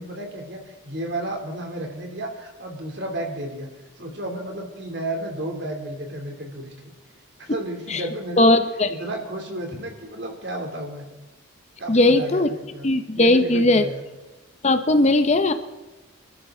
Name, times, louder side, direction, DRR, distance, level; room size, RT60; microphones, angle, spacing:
voice 1, 0.0-3.7 4.0-6.7 7.4-8.6 8.9-11.0 11.8-12.9 13.1-14.0, right 1 dB, 55° right, 2 dB, 3.0 m, -32 dB
voice 2, 8.4-8.9 11.9-12.5 12.8-13.9 14.6-15.5, left 2 dB, 35° left, 9 dB, 0.7 m, -18 dB
26.0 x 13.0 x 3.8 m, 1.1 s
head